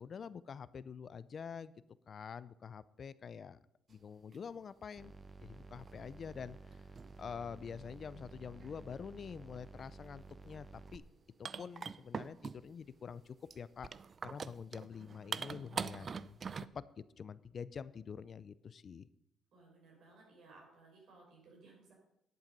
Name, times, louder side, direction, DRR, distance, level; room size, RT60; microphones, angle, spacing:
voice 1, 0.0-1.7 2.1-3.6 3.9-5.1 5.4-6.6 7.2-11.0 11.4-13.9 14.2-19.1, left 6 dB, 50° left, 17 dB, 0.4 m, -47 dB
sound 1, 4.3-4.4 5.9-6.0 6.7-7.2 8.5-8.7 10.5-10.6 10.9-11.0 11.4-12.8 13.5-16.7, right 6 dB, 45° right, 0.4 m, -43 dB
sound 2, 5.0-11.0, right 3 dB, 25° right, 0.9 m, -53 dB
voice 2, 19.5-21.9, right 3 dB, 75° right, -1 dB, 5.4 m, -60 dB
10.5 x 8.2 x 5.3 m, 0.79 s
cardioid pair, 90°, 0 cm